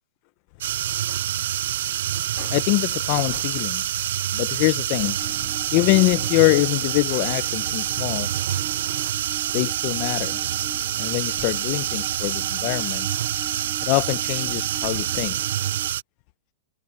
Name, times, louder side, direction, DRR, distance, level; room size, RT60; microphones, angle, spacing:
sound 1, 0.6-16.0, right 12 dB, 65° right, 0.6 m, -26 dB
voice 1, 2.4-3.8 4.3-5.3 5.7-8.3 9.5-10.4 11.0-13.1 13.4-13.6 13.8-15.4, left 25 dB, 40° left, 0.5 m, -24 dB
sound 2, 4.9-15.9, right 8 dB, 20° right, 2.4 m, -42 dB
hypercardioid pair, 155°, 0 cm